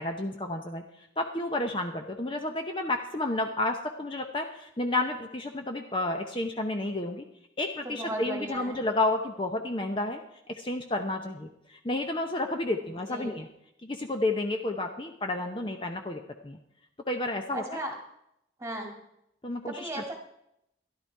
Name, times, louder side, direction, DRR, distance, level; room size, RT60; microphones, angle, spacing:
voice 1, 0.0-7.2 7.6-10.2 10.5-13.5 13.8-16.6 17.1-17.6 19.4-19.9, left 2 dB, 30° left, 4 dB, 0.8 m, -31 dB
voice 2, 7.8-8.8 12.8-13.4 17.5-18.0 18.6-18.9 19.7-20.1, right 1 dB, 15° right, 2 dB, 2.0 m, -36 dB
13.0 x 11.5 x 4.6 m, 0.79 s
head